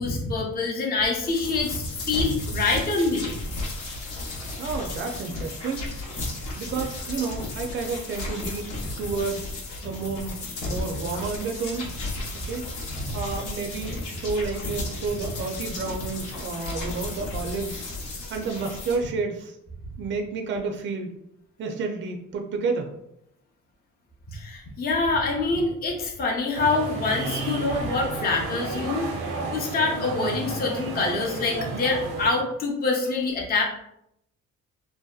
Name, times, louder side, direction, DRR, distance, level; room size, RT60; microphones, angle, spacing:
voice 1, 0.0-3.3 13.0-13.1 24.3-29.1 29.5-33.6, left 3 dB, 30° left, -1 dB, 0.5 m, -25 dB
sound 1, 1.3-19.0, left 2 dB, 90° left, 0.7 m, -34 dB
voice 2, 4.6-5.8 6.6-9.5 9.8-10.3 10.6-11.9 12.5-12.7 13.1-17.8 18.3-19.6 20.0-21.1 21.6-22.9, right 4 dB, 40° right, 3 dB, 0.4 m, -30 dB
sound 2, 8.8-15.5, equal, 65° left, 0.9 m, -43 dB
sound 3, 26.5-32.3, right 3 dB, 85° right, 0.6 m, -32 dB
2.7 x 2.1 x 2.3 m, 0.77 s
cardioid pair, 90°, 30 cm